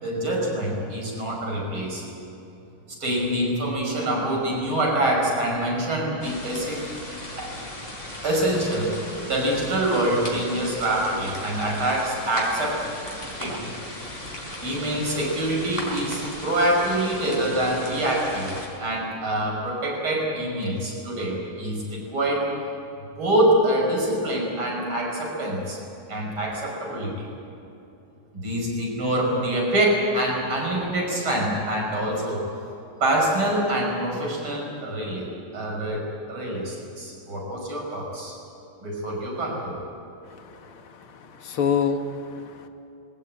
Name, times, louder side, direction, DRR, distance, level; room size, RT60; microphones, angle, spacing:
voice 1, 0.0-2.0 3.0-6.9 7.3-7.5 8.2-9.0 9.2-12.9 13.4-13.8 14.6-22.5 23.2-25.8 26.1-27.3 28.3-32.5 33.0-38.3 38.8-39.8, right 1 dB, 75° right, -1 dB, 6.6 m, -25 dB
sound 1, 6.2-18.7, left 1 dB, 25° left, 5.5 m, -37 dB
voice 2, 40.3-42.7, left 6 dB, 90° left, 6 dB, 2.3 m, -28 dB
21.5 x 19.0 x 9.0 m, 2.9 s
omnidirectional pair, 2.3 m